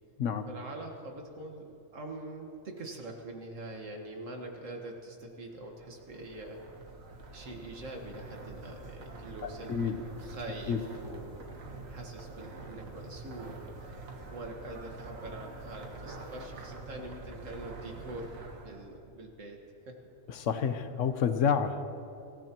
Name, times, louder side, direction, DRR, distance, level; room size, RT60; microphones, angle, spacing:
voice 1, 0.5-6.6 7.3-14.0 14.3-18.3 18.6-19.6 19.9-20.0, right 2 dB, 70° right, 2 dB, 2.0 m, -44 dB
sound 1, 5.5-19.0, right 3 dB, 90° right, 1.7 m, -46 dB
voice 2, 9.4-10.0 10.7-10.8 20.3-21.8, left 7 dB, 75° left, 9 dB, 1.1 m, -29 dB
25.0 x 14.5 x 3.0 m, 2.7 s
omnidirectional pair, 1.4 m